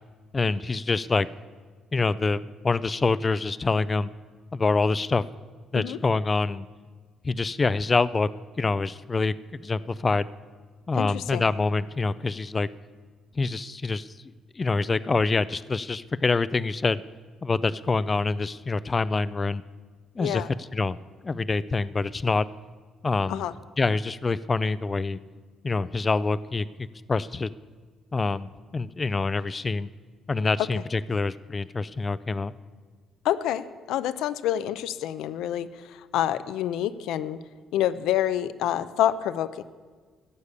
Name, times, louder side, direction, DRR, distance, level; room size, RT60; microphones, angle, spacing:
voice 1, 0.3-1.3 1.9-4.1 4.5-5.2 5.7-6.7 7.2-8.3 8.6-10.3 10.9-12.7 13.4-14.1 14.6-17.0 17.4-19.6 20.2-20.4 20.7-21.0 21.2-22.5 23.0-23.5 23.8-25.2 25.6-27.5 28.1-29.9 30.3-32.5, left 3 dB, 25° left, 18 dB, 0.3 m, -26 dB
voice 2, 10.9-11.4 20.2-20.5 23.3-23.5 33.2-37.4 37.7-39.6, left 11 dB, 90° left, 15 dB, 0.5 m, -27 dB
15.0 x 6.9 x 8.2 m, 1.5 s
cardioid pair, 140°, 0 cm